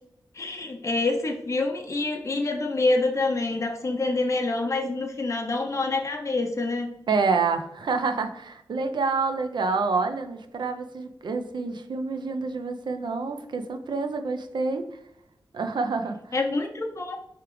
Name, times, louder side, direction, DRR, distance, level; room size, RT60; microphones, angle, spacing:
voice 1, 0.3-6.9 16.3-17.2, left 2 dB, 40° left, 2 dB, 0.5 m, -26 dB
voice 2, 7.1-14.8 15.5-16.3, right 4 dB, 65° right, 7 dB, 0.5 m, -27 dB
4.8 x 3.3 x 3.0 m, 0.79 s
cardioid pair, 50°, 8 cm